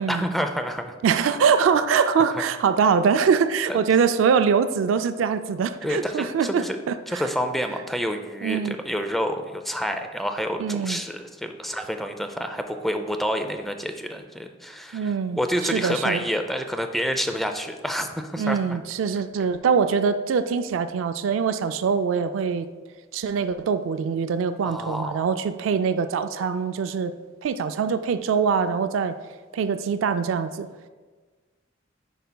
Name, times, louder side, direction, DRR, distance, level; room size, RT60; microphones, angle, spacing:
voice 1, 0.0-1.0 3.7-3.8 5.8-6.8 7.1-18.8 24.6-25.2, equal, ahead, 6 dB, 0.4 m, -28 dB
voice 2, 1.0-7.2 8.4-8.8 10.6-11.0 14.9-16.2 18.4-22.7 23.1-27.1 27.4-29.2 29.5-30.7, right 6 dB, 80° right, 10 dB, 0.3 m, -23 dB
9.1 x 5.5 x 2.2 m, 1.4 s
head